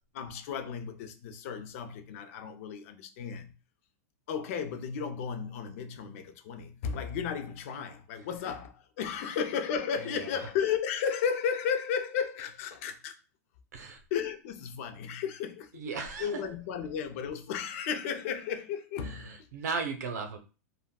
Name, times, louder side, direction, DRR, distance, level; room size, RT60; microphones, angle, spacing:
voice 1, 0.1-3.5 4.3-13.1 14.1-19.5, left 7 dB, 55° left, 0.5 m, -34 dB
voice 2, 10.0-10.4 13.7-14.0 15.7-16.4 19.0-20.4, right 4 dB, 80° right, 0.7 m, -36 dB
3.5 x 2.2 x 2.3 m
supercardioid pair, 135°, 9 cm